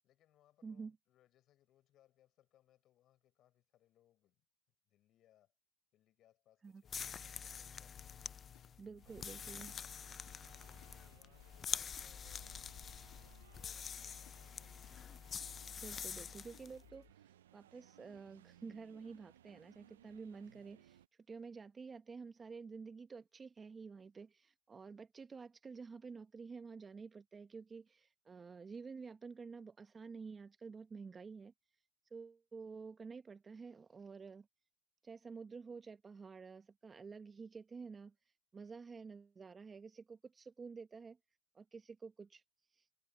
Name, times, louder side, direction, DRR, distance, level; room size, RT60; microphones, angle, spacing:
voice 1, 0.0-4.4 4.9-5.5 5.9-8.1 9.0-9.5 10.6-12.7 13.2-15.4, left 13 dB, 45° left, 7.5 m, -72 dB
voice 2, 0.6-1.0 6.6-6.8 8.8-9.7 15.8-21.0 21.3-31.5 32.1-34.5 35.0-38.1 38.5-41.2 41.5-42.4 42.7-42.9, right 5 dB, 20° right, 1.1 m, -50 dB
sound 1, 6.8-16.7, left 7 dB, 30° left, 0.5 m, -46 dB
sound 2, 8.0-17.1, left 23 dB, 60° left, 2.7 m, -67 dB
sound 3, 9.1-21.1, right 11 dB, 85° right, 0.7 m, -65 dB
hypercardioid pair, 100°, 0 cm